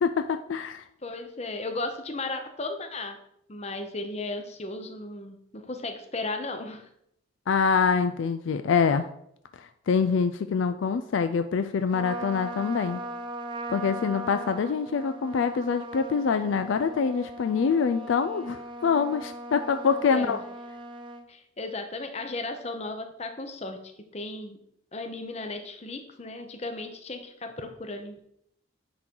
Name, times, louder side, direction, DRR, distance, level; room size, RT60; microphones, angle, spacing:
voice 1, 0.0-0.8 7.5-9.1 9.6-13.0 13.7-20.4, left 5 dB, 70° left, 10 dB, 0.4 m, -25 dB
voice 2, 1.0-3.2 3.5-6.8 20.1-20.4 21.3-23.8 24.1-24.6 24.9-28.3, left 2 dB, 30° left, 6 dB, 0.8 m, -35 dB
Trumpet, 11.9-21.3, right 1 dB, 25° right, 0.4 m, -39 dB
9.7 x 3.8 x 4.5 m, 0.74 s
head